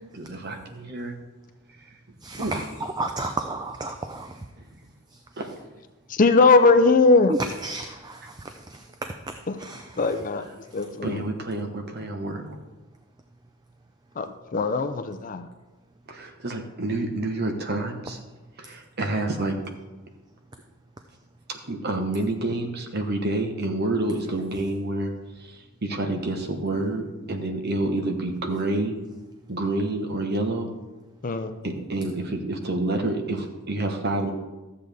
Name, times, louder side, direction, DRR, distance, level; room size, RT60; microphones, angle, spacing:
voice 1, 0.1-1.2 1.7-2.0 2.4-2.7 4.6-4.9 5.4-5.7 11.0-12.6 16.1-18.2 18.6-19.5 21.5-28.9 29.5-30.7 31.6-34.3, right 2 dB, 45° right, 4 dB, 1.1 m, -28 dB
voice 2, 2.2-2.6 3.0-4.3 7.6-8.2 9.6-9.8, right 2 dB, 20° right, 6 dB, 0.4 m, -32 dB
voice 3, 6.1-7.3 9.5-9.6 10.0-11.2 14.2-15.5 31.2-31.6, left 3 dB, 35° left, 9 dB, 0.5 m, -20 dB
13.0 x 7.8 x 3.5 m, 1.1 s
head